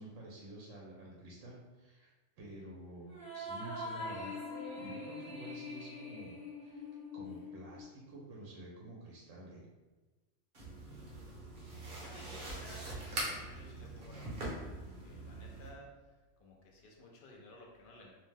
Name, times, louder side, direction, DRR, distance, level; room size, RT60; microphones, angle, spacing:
voice 1, 0.0-2.1 2.4-4.4 4.8-6.9 7.1-9.6, right 1 dB, 80° right, -3 dB, 0.9 m, -50 dB
sound 1, 3.1-7.8, left 2 dB, 15° right, 0.7 m, -43 dB
sound 2, 10.5-15.7, right 1 dB, 50° right, 0.9 m, -43 dB
voice 2, 11.5-14.6 15.0-16.1 16.4-18.1, left 1 dB, 60° left, -1 dB, 0.6 m, -55 dB
2.6 x 2.1 x 3.2 m, 1.2 s
omnidirectional pair, 1.3 m